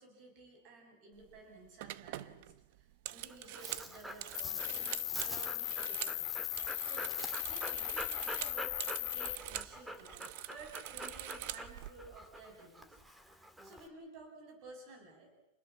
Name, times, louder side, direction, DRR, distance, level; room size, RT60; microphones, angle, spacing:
voice 1, 0.0-6.3 6.8-7.2 7.5-13.0 13.6-15.3, right 2 dB, 40° right, 4 dB, 7.4 m, -54 dB
sound 1, 1.2-1.4 1.8-6.2 6.5-9.7 10.0-11.9, right 16 dB, 55° right, 0.8 m, -45 dB
Dog, 3.1-13.9, equal, 5° right, 1.8 m, -46 dB
Cricket, 4.3-9.3, left 20 dB, 55° left, 1.5 m, -38 dB
28.0 x 20.0 x 7.3 m, 0.96 s
supercardioid pair, 160°, 0 cm